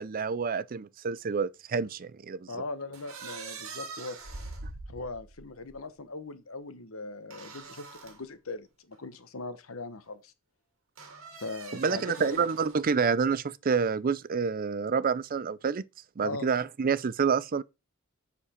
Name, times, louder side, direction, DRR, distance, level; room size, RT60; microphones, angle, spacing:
voice 1, 0.0-2.5 11.7-15.8 16.2-17.6, right 5 dB, 45° right, 0.5 m, -28 dB
voice 2, 2.5-4.2 4.9-10.3 11.4-12.4 16.2-16.5, left 3 dB, 80° left, 1.1 m, -40 dB
sound 1, 2.9-5.8 7.3-8.2 8.9-9.0 11.0-12.9, right 4 dB, 85° right, 2.0 m, -44 dB
7.4 x 6.8 x 4.4 m
head